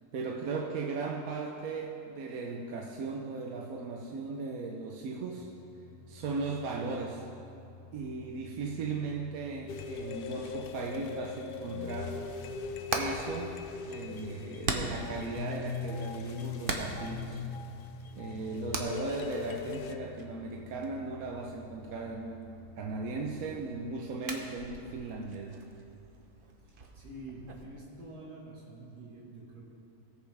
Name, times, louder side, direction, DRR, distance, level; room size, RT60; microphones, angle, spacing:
voice 1, 0.1-5.5 6.1-7.3 7.9-12.2 13.0-13.6 13.9-17.4 18.2-25.6, right 3 dB, 70° right, 1 dB, 1.1 m, -37 dB
sound 1, 5.4-23.7, left 3 dB, 5° right, 0.6 m, -53 dB
sound 2, 9.7-19.9, left 5 dB, 75° left, 0.5 m, -40 dB
Hammer, 12.4-27.6, right 3 dB, 45° right, 0.9 m, -42 dB
voice 2, 26.6-29.7, right 2 dB, 85° right, -5 dB, 2.1 m, -47 dB
18.0 x 7.9 x 3.4 m, 2.7 s
omnidirectional pair, 1.6 m